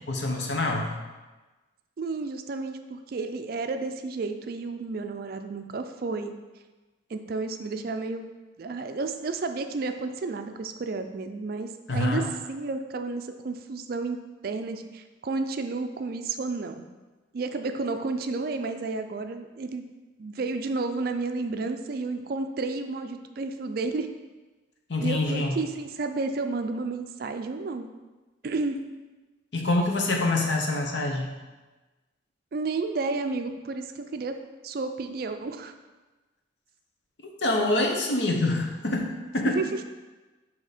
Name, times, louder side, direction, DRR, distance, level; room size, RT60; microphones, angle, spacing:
voice 1, 0.1-0.9 11.9-12.3 24.9-25.6 29.5-31.3 37.4-39.6, left 2 dB, 65° left, 1 dB, 0.8 m, -26 dB
voice 2, 2.0-6.3 7.1-8.2 8.6-12.2 12.5-16.8 17.3-19.8 20.2-24.1 25.0-27.9 28.4-28.8 32.5-34.4 34.6-35.7 39.5-39.8, right 3 dB, 50° right, 7 dB, 0.4 m, -31 dB
6.6 x 2.8 x 5.0 m, 1.2 s
head